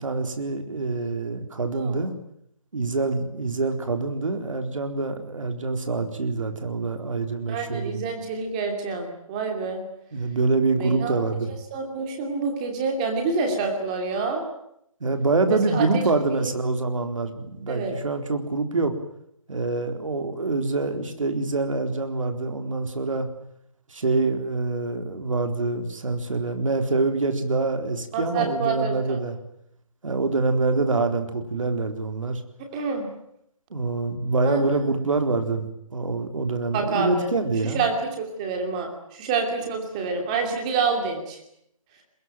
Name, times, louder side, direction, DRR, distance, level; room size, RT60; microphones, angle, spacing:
voice 1, 0.0-2.1 2.7-8.0 10.1-11.5 15.0-18.9 19.5-23.3 23.9-29.4 30.0-32.4 33.7-37.8, right 3 dB, 65° right, 6 dB, 4.0 m, -25 dB
voice 2, 1.7-2.0 7.5-9.8 10.7-11.2 11.7-14.4 15.5-16.0 16.4-16.5 17.7-17.9 28.1-29.2 32.7-33.1 34.4-34.6 36.7-37.3 37.7-41.4, right 4 dB, 15° right, 3 dB, 2.7 m, -27 dB
23.5 x 21.0 x 9.0 m, 0.74 s
hypercardioid pair, 180°, 18 cm